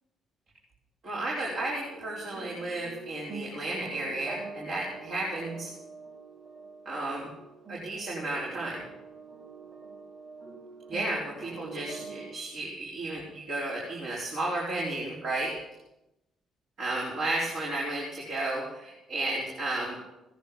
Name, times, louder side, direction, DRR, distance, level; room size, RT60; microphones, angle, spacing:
voice 1, 1.0-5.7 6.8-7.3 7.7-8.8 10.9-15.5 16.8-20.0, right 2 dB, 70° right, -5 dB, 4.6 m, -33 dB
sound 1, 1.4-12.3, right 4 dB, 45° right, 6.7 m, -45 dB
17.5 x 10.5 x 7.1 m, 0.93 s
supercardioid pair, 65°, 0 cm